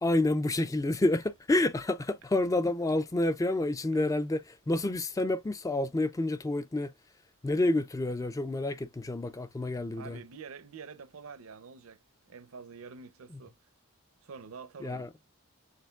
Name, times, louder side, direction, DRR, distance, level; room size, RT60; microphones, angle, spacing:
voice 1, 0.0-6.9 7.4-10.2 14.8-15.1, left 2 dB, 15° left, 0.3 m, -29 dB
voice 2, 9.6-13.6 14.2-15.1, right 5 dB, 65° right, 0.6 m, -47 dB
6.5 x 3.5 x 2.2 m
head